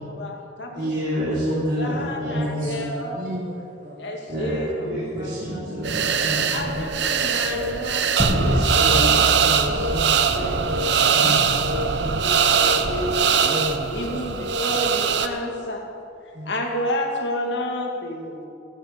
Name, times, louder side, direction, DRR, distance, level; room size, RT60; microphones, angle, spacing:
voice 1, 0.0-0.9 1.5-3.3 4.0-5.6 6.5-8.2 8.7-9.3 9.6-10.8 11.6-13.4 13.9-15.9 16.5-18.5, left 1 dB, 65° left, 1 dB, 2.3 m, -31 dB
voice 2, 0.7-2.8 4.3-4.6 4.9-6.7 8.2-9.1 11.1-11.5, equal, 85° right, -8 dB, 4.1 m, -28 dB
voice 3, 2.3-4.2 5.2-5.3 9.4-11.3 12.0-12.2 13.4-14.2 14.5-14.8 16.3-16.5, equal, 45° right, 1 dB, 1.1 m, -34 dB
sound 1, 5.8-15.3, right 6 dB, 65° right, 0.9 m, -21 dB
sound 2, 8.2-11.0, equal, ahead, 3.1 m, -26 dB
16.0 x 15.5 x 5.3 m, 2.7 s
head